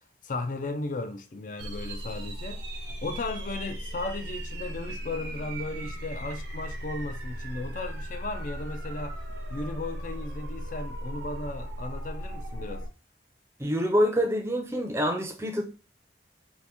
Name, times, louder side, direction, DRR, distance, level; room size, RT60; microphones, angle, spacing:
voice 1, 0.2-2.6 3.0-9.2 9.5-12.9, left 2 dB, 45° left, 0.4 m, -35 dB
sound 1, 1.6-12.9, right 1 dB, 75° right, 0.7 m, -37 dB
voice 2, 13.6-15.7, equal, 15° right, 0.5 m, -26 dB
2.8 x 2.5 x 3.4 m
head